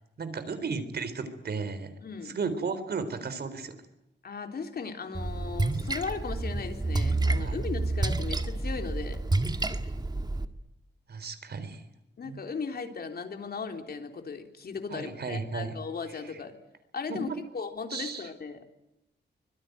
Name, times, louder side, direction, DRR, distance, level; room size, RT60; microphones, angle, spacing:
voice 1, 0.2-1.9 2.2-3.8 7.3-7.6 11.1-11.8 12.2-12.4 14.9-15.8 16.1-16.4 17.1-17.4 17.9-18.3, right 4 dB, 65° right, 11 dB, 3.9 m, -35 dB
voice 2, 2.0-2.4 4.2-9.2 12.2-16.5 16.9-18.6, left 5 dB, 60° left, 5 dB, 3.6 m, -37 dB
Splash splatter, 5.1-10.4, right 2 dB, 25° right, 1.9 m, -29 dB
25.0 x 21.0 x 9.3 m, 0.88 s
wide cardioid pair, 95°, 18 cm